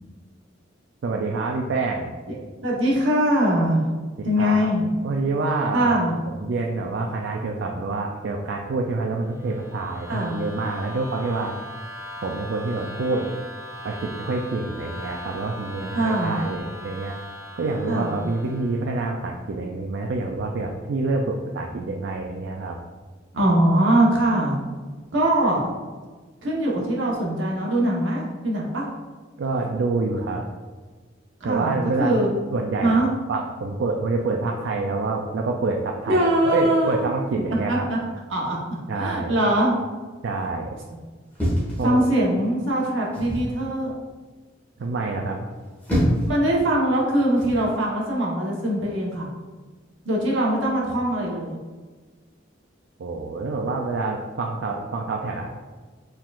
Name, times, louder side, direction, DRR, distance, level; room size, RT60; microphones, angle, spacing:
voice 1, 1.0-2.1 4.4-4.7 5.0-5.9 6.3-11.5 12.2-13.3 13.8-17.1 17.6-22.8 29.4-30.4 31.4-33.0 33.3-37.9 38.9-39.4 40.2-40.8 41.8-42.0 44.8-45.4 53.0-55.5, right 3 dB, 65° right, 1 dB, 0.4 m, -27 dB
voice 2, 2.6-3.8 4.2-4.9 5.7-6.1 10.1-10.4 15.9-16.4 17.9-18.2 23.3-24.6 25.1-25.7 26.4-28.9 31.4-32.3 32.8-33.1 36.1-37.1 37.7-38.0 38.3-38.6 39.0-39.7 41.8-43.9 46.3-49.3 50.0-51.6, right 1 dB, 80° right, -3 dB, 1.1 m, -22 dB
sound 1, 9.2-18.9, equal, 15° right, 0.7 m, -39 dB
sound 2, 41.4-42.4 43.1-43.5 45.5-46.4 47.4-47.6, equal, 10° left, 1.4 m, -25 dB
4.5 x 3.7 x 2.4 m, 1.4 s
head